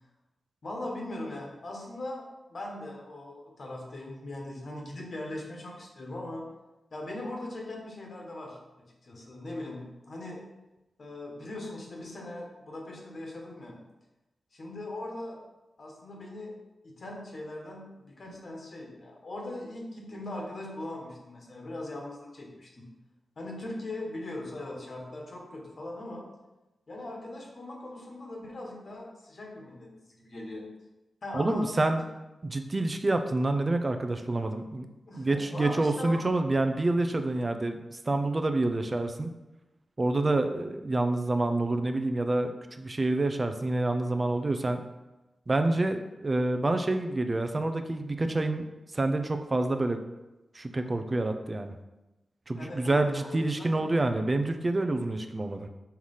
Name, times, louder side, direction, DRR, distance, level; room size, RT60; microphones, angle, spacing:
voice 1, 0.6-6.5 6.9-10.4 11.0-13.8 14.5-15.4 15.8-16.5 16.8-22.9 23.4-26.3 26.9-30.7 31.2-31.7 35.1-36.3 52.6-53.9, left 1 dB, 60° left, -1 dB, 1.5 m, -40 dB
voice 2, 31.3-32.0 32.4-34.9 35.2-39.3 40.0-44.8 45.5-48.7 48.9-50.0 50.5-51.7 52.5-55.7, right 2 dB, 35° right, 7 dB, 0.6 m, -27 dB
5.7 x 3.2 x 5.5 m, 1.0 s
cardioid pair, 65°, 0 cm